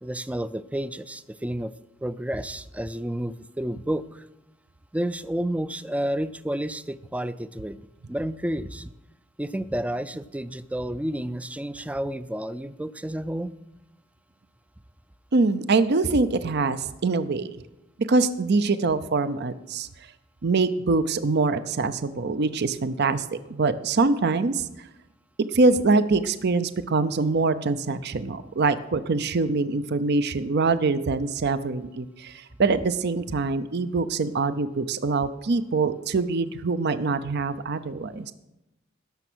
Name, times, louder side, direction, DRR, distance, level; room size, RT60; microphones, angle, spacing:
voice 1, 0.0-1.7 2.0-4.3 4.9-7.8 8.1-8.9 9.4-13.5, right 1 dB, 5° right, 15 dB, 0.4 m, -30 dB
voice 2, 15.3-17.5 18.1-20.1 20.4-24.9 25.5-38.3, right 3 dB, 55° right, 13 dB, 0.6 m, -24 dB
17.0 x 6.9 x 6.2 m, 0.94 s
head